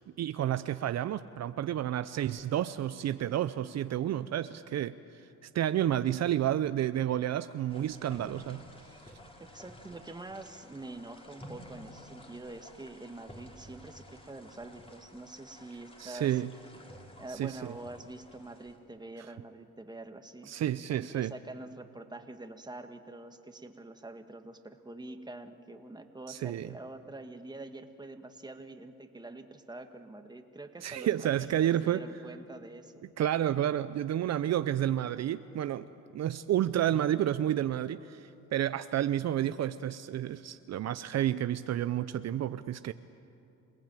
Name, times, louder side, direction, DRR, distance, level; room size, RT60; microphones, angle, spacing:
voice 1, 0.2-4.9 5.4-8.6 16.0-16.5 17.3-17.7 20.5-21.3 26.3-26.7 30.8-32.0 33.2-42.9, right 11 dB, 60° right, 13 dB, 0.6 m, -30 dB
sound 1, 7.7-18.8, equal, 20° left, 3.6 m, -52 dB
voice 2, 9.4-16.4 17.2-20.5 21.2-33.1, right 2 dB, 15° right, 7 dB, 1.7 m, -46 dB
27.5 x 18.0 x 9.0 m, 2.8 s
cardioid pair, 90°, 30 cm